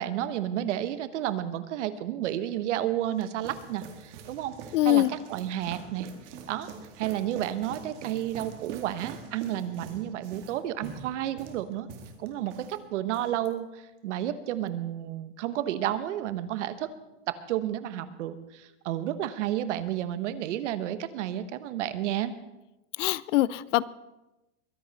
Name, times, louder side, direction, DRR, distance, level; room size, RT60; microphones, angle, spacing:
voice 1, 0.0-6.7 7.0-11.9 12.2-16.9 17.3-22.3, right 12 dB, 70° right, 12 dB, 1.2 m, -31 dB
sound 1, 2.8-12.8 13.1-13.5, right 6 dB, 50° right, 2.1 m, -44 dB
voice 2, 4.7-5.1 23.0-23.8, left 16 dB, 75° left, 20 dB, 0.6 m, -23 dB
22.5 x 10.5 x 4.1 m, 0.98 s
supercardioid pair, 175°, 37 cm